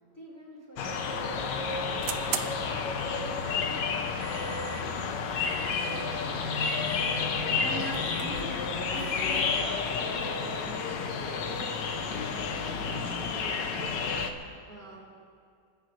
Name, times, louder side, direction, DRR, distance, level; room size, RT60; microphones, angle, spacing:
voice 1, 0.0-2.4 2.6-6.8 7.2-8.6, equal, 10° left, -6 dB, 4.3 m, -50 dB
sound 1, 0.8-14.3, left 5 dB, 85° left, 1.6 m, -31 dB
sound 2, 0.8-13.3, right 8 dB, 75° right, 1.4 m, -44 dB
voice 2, 7.5-8.6 8.9-12.4 12.8-14.0 14.7-15.0, right 2 dB, 55° right, -4 dB, 2.4 m, -43 dB
28.0 x 12.5 x 3.2 m, 2.3 s
omnidirectional pair, 1.8 m